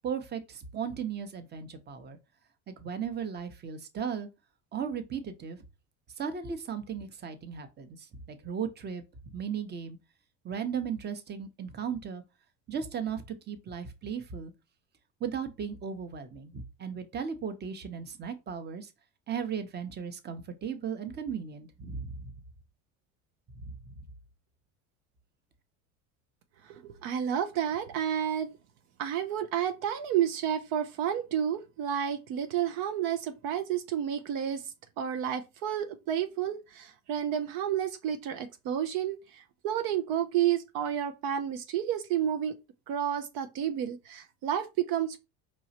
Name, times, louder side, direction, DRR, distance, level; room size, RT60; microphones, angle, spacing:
voice 1, 0.0-2.2 2.7-4.3 4.7-5.6 6.2-10.0 10.4-12.2 12.7-14.5 15.2-18.9 19.3-22.3 23.5-23.7, right 7 dB, 30° right, 0.8 m, -36 dB
voice 2, 26.6-28.5 29.0-34.6 35.0-42.6 42.9-45.2, right 9 dB, 70° right, 0.7 m, -31 dB
4.6 x 3.1 x 2.8 m
supercardioid pair, 100°, 36 cm